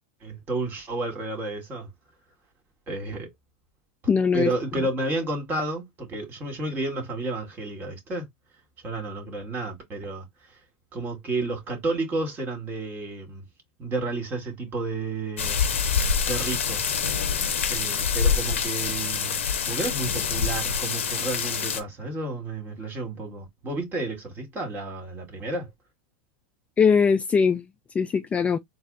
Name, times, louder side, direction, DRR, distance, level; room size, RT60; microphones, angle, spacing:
voice 1, 0.2-1.9 2.9-3.3 4.3-8.3 8.8-10.2 10.9-13.4 13.8-15.8 16.2-17.0 17.7-25.7, right 2 dB, 30° right, 2.1 m, -31 dB
voice 2, 4.1-4.5 26.8-27.7 27.9-28.6, left 6 dB, 20° left, 0.4 m, -21 dB
sound 1, 15.4-21.8, left 6 dB, 90° left, 0.8 m, -26 dB
4.1 x 2.0 x 4.0 m
hypercardioid pair, 110°, 7 cm